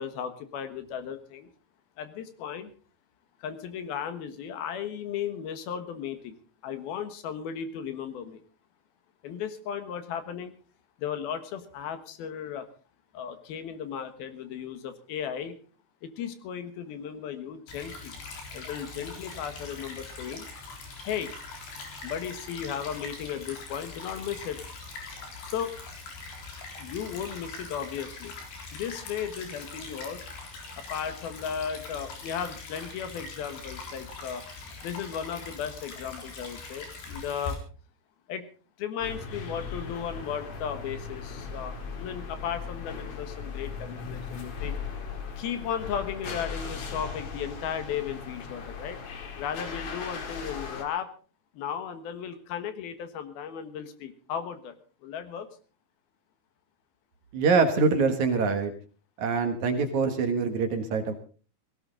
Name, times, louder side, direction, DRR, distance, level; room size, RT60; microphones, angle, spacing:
voice 1, 0.0-1.5 2.0-2.7 3.4-6.3 6.6-8.4 9.2-10.5 11.0-12.7 13.1-15.6 16.0-18.2 18.5-20.4 21.1-21.3 22.0-24.6 25.4-25.7 26.8-28.3 28.7-30.2 30.8-34.4 34.8-37.6 38.3-38.5 38.8-44.7 45.4-49.0 49.4-51.1 51.6-54.7 55.0-55.5, left 8 dB, 75° left, 10 dB, 3.3 m, -35 dB
Stream / Trickle dribble, 17.7-37.6, left 3 dB, 90° left, 6.0 m, -42 dB
sound 1, 39.0-50.8, left 5 dB, 45° left, 2.5 m, -38 dB
voice 2, 57.3-58.7 59.2-61.1, right 4 dB, 60° right, 7 dB, 2.5 m, -24 dB
18.0 x 17.5 x 3.8 m, 0.37 s
omnidirectional pair, 4.5 m